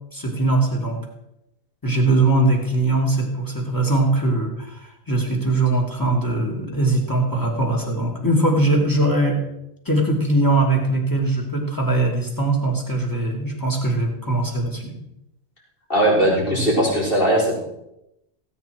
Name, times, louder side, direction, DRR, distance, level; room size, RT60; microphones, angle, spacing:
voice 1, 0.1-1.0 1.8-9.4 9.8-15.0, right 2 dB, 20° left, 0 dB, 2.8 m, -21 dB
voice 2, 15.9-17.5, right 1 dB, 55° left, -5 dB, 4.4 m, -19 dB
16.5 x 8.8 x 4.6 m, 0.85 s
omnidirectional pair, 1.1 m